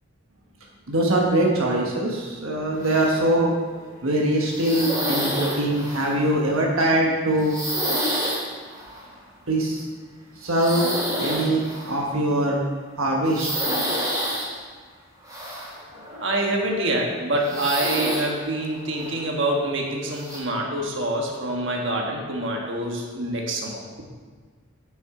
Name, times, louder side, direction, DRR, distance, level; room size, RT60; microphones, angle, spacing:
voice 1, 0.9-3.5 4.0-7.5 9.5-9.8 10.4-10.9 11.2-12.6 13.0-13.5, right 1 dB, 75° right, -1 dB, 1.3 m, -22 dB
sound 1, 2.8-3.4 3.8-4.0 4.4-6.2 7.4-8.4 8.7-9.0 10.5-12.0 13.3-14.5 15.3-16.3 16.7-16.8 17.4-18.3 18.7-19.2 20.1-20.4, equal, 20° right, 2.5 m, -28 dB
voice 2, 16.2-23.8, right 1 dB, 55° right, 0 dB, 1.5 m, -26 dB
9.4 x 7.1 x 4.9 m, 1.5 s
head